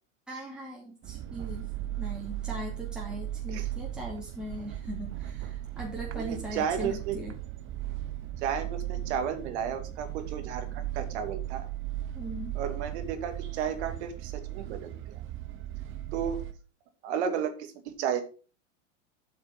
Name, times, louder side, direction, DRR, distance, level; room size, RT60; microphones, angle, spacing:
voice 1, 0.3-1.7 2.0-7.3 12.1-12.6, equal, ahead, -4 dB, 2.6 m, -39 dB
sound 1, 1.0-16.5, right 13 dB, 35° right, 1.0 m, -37 dB
voice 2, 6.1-7.2 8.4-11.7 12.6-15.2 16.1-16.4 17.0-18.2, right 8 dB, 65° right, 7 dB, 2.3 m, -33 dB
8.0 x 6.0 x 5.7 m, 0.36 s
hypercardioid pair, 120°, 37 cm